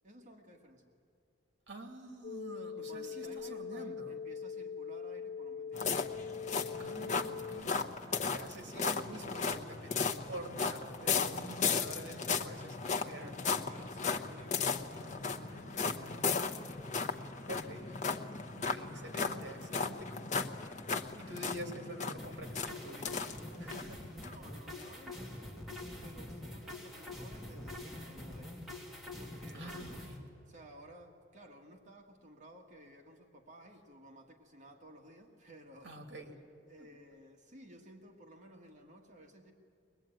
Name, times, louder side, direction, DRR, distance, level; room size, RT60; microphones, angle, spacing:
voice 1, 0.0-0.8 2.8-6.3 12.1-12.6 12.9-16.1 24.1-28.5 29.2-30.2 30.5-36.0 36.7-39.5, right 1 dB, 40° right, 1 dB, 1.8 m, -56 dB
voice 2, 1.7-4.2 6.8-12.7 13.1-13.3 15.0-16.7 17.5-17.9 18.5-20.5 21.2-23.3 23.6-24.1 29.5-30.2 35.8-36.3 36.8-36.9, right 1 dB, 65° right, 5 dB, 2.4 m, -47 dB
sound 1, 2.2-7.6, left 6 dB, 65° left, 0.6 m, -42 dB
sound 2, 5.7-23.9 24.2-24.4 24.8-24.9, left 5 dB, 40° left, 0.9 m, -36 dB
sound 3, 22.2-30.2, left 1 dB, ahead, 2.8 m, -45 dB
22.0 x 20.5 x 9.1 m, 2.5 s
head